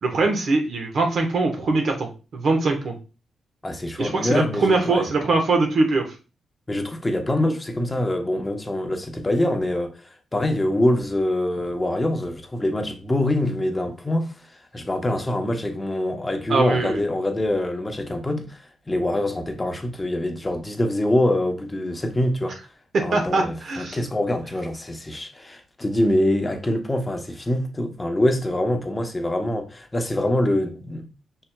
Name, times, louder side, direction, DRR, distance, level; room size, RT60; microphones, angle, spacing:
voice 1, 0.0-2.9 4.0-6.1 16.5-17.0 22.9-24.0, right 3 dB, 65° right, 1.1 m, -22 dB
voice 2, 3.6-5.1 6.7-9.9 10.3-14.3 14.7-18.6 18.9-22.5 23.0-31.1, left 1 dB, 20° left, 0.8 m, -24 dB
5.5 x 4.2 x 2.2 m
cardioid pair, 70°, 0 cm